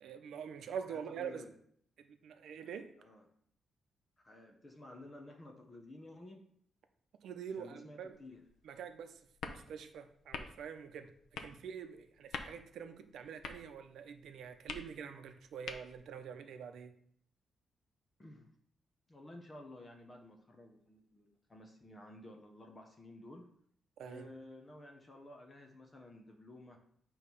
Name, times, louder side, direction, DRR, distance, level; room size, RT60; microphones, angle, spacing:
voice 1, 0.0-1.5 2.0-2.9 7.2-8.2 8.6-9.2 9.5-11.1 11.4-16.9 24.0-24.3, right 7 dB, 80° right, 7 dB, 0.7 m, -45 dB
voice 2, 0.9-1.5 3.0-3.2 4.2-6.4 7.6-8.4 18.2-18.5 19.1-23.5 24.1-26.8, left 1 dB, 20° left, 3 dB, 0.7 m, -53 dB
sound 1, 8.1-16.2, left 5 dB, 85° left, 0.7 m, -49 dB
8.6 x 3.0 x 5.4 m, 0.64 s
wide cardioid pair, 175°, 0 cm